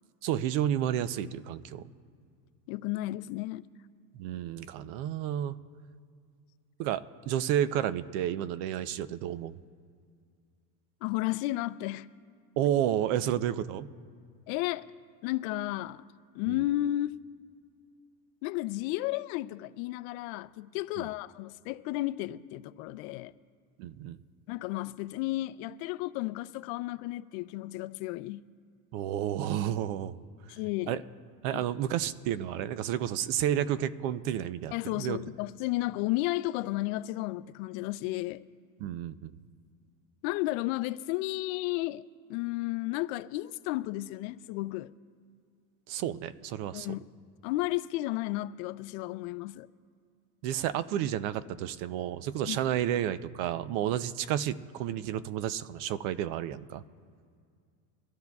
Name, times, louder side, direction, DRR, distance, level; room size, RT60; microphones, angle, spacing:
voice 1, 0.2-1.9 4.1-5.6 6.8-9.6 12.6-13.9 16.5-16.6 21.0-21.1 23.8-24.2 28.9-30.2 30.5-30.6 30.9-31.0 31.4-35.2 38.8-39.3 45.9-47.0 50.4-56.8, right 11 dB, 60° right, 0.7 m, -31 dB
voice 2, 2.7-3.7 11.0-12.1 14.5-14.9 15.2-16.0 16.3-17.2 18.4-23.3 24.5-28.4 30.5-31.0 31.5-31.6 34.7-38.4 40.2-44.9 46.7-47.0 47.4-49.7 52.5-52.6, left 17 dB, 60° left, 0.5 m, -33 dB
23.5 x 13.5 x 2.3 m
supercardioid pair, 140°, 46 cm